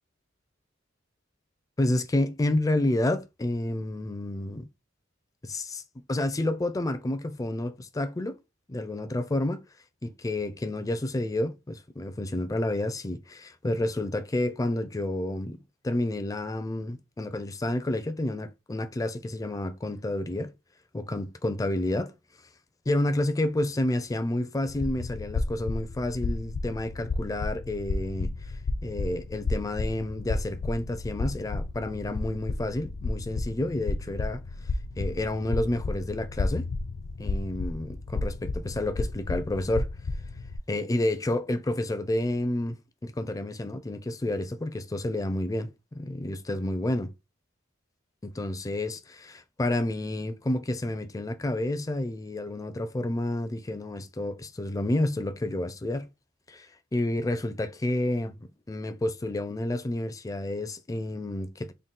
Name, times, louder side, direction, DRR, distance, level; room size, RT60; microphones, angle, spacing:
voice 1, 1.8-4.7 5.4-5.8 6.1-8.4 8.7-9.6 10.0-15.6 15.8-20.5 20.9-22.1 22.9-28.3 28.8-34.4 35.0-36.7 37.2-39.9 40.7-42.8 43.0-47.1 48.2-56.1 56.5-56.7 56.9-58.4 58.7-61.7, left 1 dB, 20° left, 0.4 m, -30 dB
sound 1, 24.7-40.6, left 3 dB, 75° left, 0.4 m, -32 dB
3.9 x 2.2 x 3.6 m
head